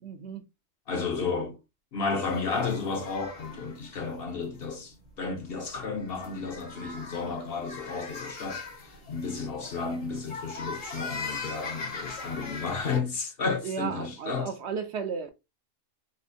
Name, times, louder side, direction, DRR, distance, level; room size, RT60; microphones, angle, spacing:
voice 1, 0.0-0.4 1.2-1.5 13.6-15.3, right 6 dB, 65° right, 0.8 m, -35 dB
voice 2, 0.9-1.6 1.9-8.6 9.1-14.5, left 4 dB, 55° left, 0.8 m, -32 dB
sound 1, 2.1-13.0, left 4 dB, 75° left, 1.7 m, -41 dB
4.3 x 2.5 x 2.5 m
omnidirectional pair, 1.3 m